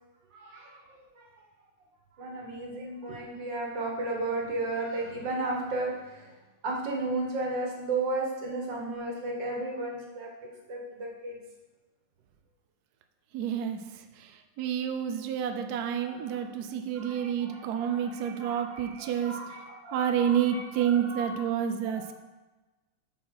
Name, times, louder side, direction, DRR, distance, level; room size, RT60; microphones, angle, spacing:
voice 1, 0.3-0.8 1.2-1.3 2.2-6.3 6.6-10.3 10.7-11.4 16.0-16.4 17.0-21.5 21.9-22.1, right 2 dB, 55° right, -1 dB, 2.1 m, -34 dB
voice 2, 13.3-19.4 19.9-22.1, right 9 dB, 80° right, 7 dB, 0.8 m, -29 dB
8.6 x 5.7 x 4.7 m, 1.2 s
omnidirectional pair, 2.4 m